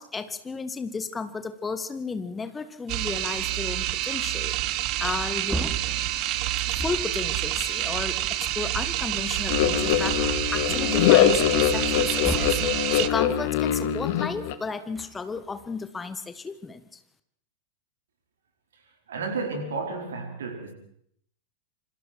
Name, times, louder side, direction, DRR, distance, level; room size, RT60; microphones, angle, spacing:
voice 1, 0.0-4.5 5.0-5.7 6.0-12.6 12.9-17.0, left 4 dB, 15° left, 1.7 m, -34 dB
sound 1, 2.9-13.1, right 14 dB, 40° right, 1.3 m, -28 dB
Wood, 5.1-7.3 8.4-8.5 8.8-10.0 10.5-10.6 11.8-12.7 14.7-15.7, right 2 dB, 5° right, 2.8 m, -36 dB
sound 2, 9.5-14.6, left 11 dB, 50° left, 2.0 m, -23 dB
voice 2, 19.1-20.7, right 3 dB, 65° right, 4.8 m, -32 dB
27.5 x 25.5 x 4.5 m
figure-of-eight pair, 90°, 0 cm